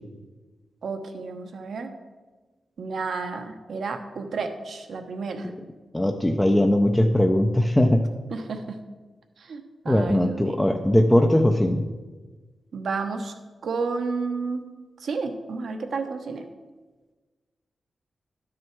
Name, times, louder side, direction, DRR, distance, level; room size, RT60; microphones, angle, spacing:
voice 1, 0.8-1.9 2.8-5.5 8.3-8.8 9.4-10.6 12.7-13.4 13.6-14.6 15.0-16.5, right 4 dB, 75° right, 6 dB, 1.0 m, -31 dB
voice 2, 5.9-8.1 9.9-11.8, left 1 dB, 10° left, 3 dB, 0.5 m, -20 dB
12.0 x 6.2 x 4.6 m, 1.3 s
wide cardioid pair, 110°, 0 cm